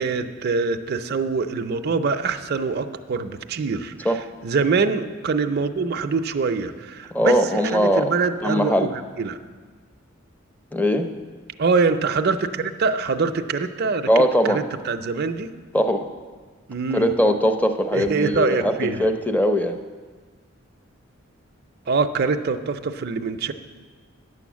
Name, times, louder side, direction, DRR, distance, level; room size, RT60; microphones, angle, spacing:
voice 1, 0.0-4.2 4.4-8.9 9.2-9.4 11.6-14.1 14.5-15.5 16.7-17.1 17.9-19.1 21.9-23.5, right 4 dB, 50° right, 7 dB, 0.5 m, -24 dB
voice 2, 7.1-8.1 8.4-8.9 10.7-11.1 14.1-14.6 15.7-16.1 16.9-18.7 19.0-19.8, equal, 10° left, 7 dB, 0.5 m, -20 dB
9.7 x 7.0 x 7.3 m, 1.5 s
head